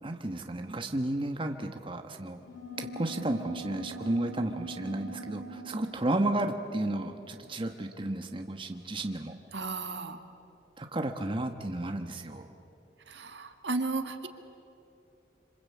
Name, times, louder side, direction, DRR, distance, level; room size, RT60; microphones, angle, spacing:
voice 1, 0.0-2.4 2.8-9.3 10.8-12.5, right 1 dB, 30° right, 5 dB, 1.2 m, -32 dB
sound 1, 2.4-8.4, right 2 dB, 85° left, 7.7 m, -44 dB
voice 2, 9.5-10.2 13.1-14.3, right 3 dB, 80° right, 7 dB, 1.9 m, -34 dB
26.5 x 26.0 x 8.5 m, 2.7 s
head